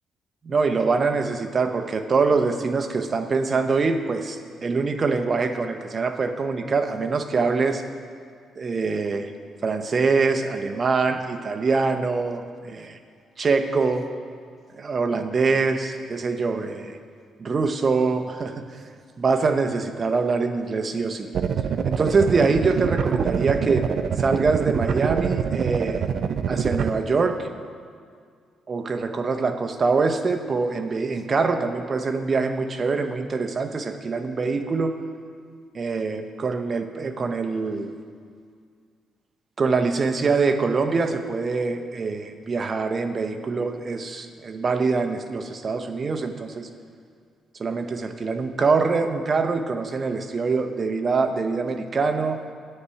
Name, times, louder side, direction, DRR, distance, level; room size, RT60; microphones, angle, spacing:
voice 1, 0.4-7.8 8.6-9.3 9.6-13.0 13.4-14.1 14.7-17.0 17.4-18.6 19.2-21.3 21.8-23.9 24.2-26.1 26.5-27.5 28.7-34.9 35.7-37.9 39.6-46.7 47.6-52.4, right 4 dB, 40° right, 7 dB, 0.8 m, -24 dB
sound 1, 21.3-26.9, right 7 dB, 60° right, 0.5 m, -25 dB
10.0 x 8.3 x 5.7 m, 2.1 s
cardioid pair, 90°, 0 cm